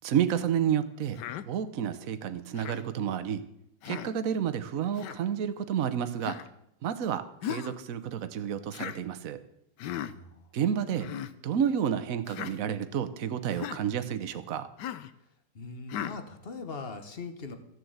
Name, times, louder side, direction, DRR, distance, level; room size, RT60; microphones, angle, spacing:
voice 1, 0.0-1.2 1.5-3.4 3.8-6.4 6.8-9.4 10.5-11.1 11.4-14.7, right 8 dB, 55° right, 10 dB, 1.2 m, -30 dB
Human voice, 1.2-1.5 2.6-2.8 3.8-4.1 5.0-5.2 6.2-6.5 7.4-7.8 8.7-9.0 9.8-10.1 10.9-11.3 12.3-12.5 13.5-13.8 14.8-15.1 15.9-16.2, left 10 dB, 70° left, 1.3 m, -37 dB
voice 2, 9.8-10.5 15.5-17.6, left 4 dB, 35° left, 8 dB, 1.3 m, -41 dB
14.5 x 7.6 x 7.9 m, 0.78 s
omnidirectional pair, 2.1 m